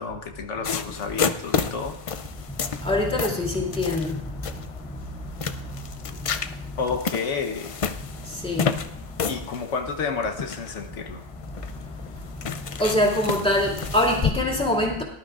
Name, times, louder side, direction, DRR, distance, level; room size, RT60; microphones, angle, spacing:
voice 1, 0.0-2.0 6.8-7.7 9.2-11.2, left 5 dB, 90° left, 5 dB, 1.4 m, -30 dB
sound 1, 0.6-14.3, left 6 dB, 55° left, 0.3 m, -31 dB
voice 2, 2.8-4.2 8.4-8.8 12.8-15.0, left 1 dB, 5° left, -3 dB, 2.1 m, -23 dB
19.0 x 11.5 x 2.5 m, 0.77 s
omnidirectional pair, 1.2 m